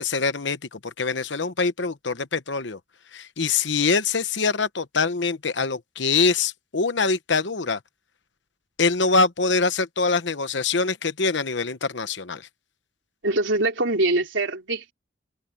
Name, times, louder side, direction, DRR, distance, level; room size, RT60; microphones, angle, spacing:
voice 1, 0.0-2.8 3.1-7.8 8.8-12.5, left 4 dB, 70° left, 1.1 m, -24 dB
voice 2, 13.2-14.9, right 2 dB, 80° right, 3.6 m, -23 dB
head